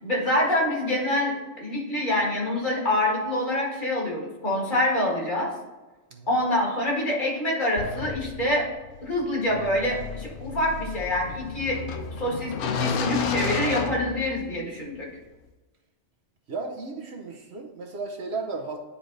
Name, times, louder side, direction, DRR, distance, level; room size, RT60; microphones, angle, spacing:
voice 1, 0.0-5.5 6.3-8.6 9.0-11.8 12.2-15.1, left 1 dB, 40° left, -3 dB, 1.8 m, -26 dB
sound 1, 7.8-14.7, left 5 dB, 90° left, 1.0 m, -32 dB
voice 2, 16.5-18.8, right 3 dB, 60° right, 1 dB, 1.0 m, -34 dB
10.0 x 3.4 x 3.9 m, 1.2 s
omnidirectional pair, 1.3 m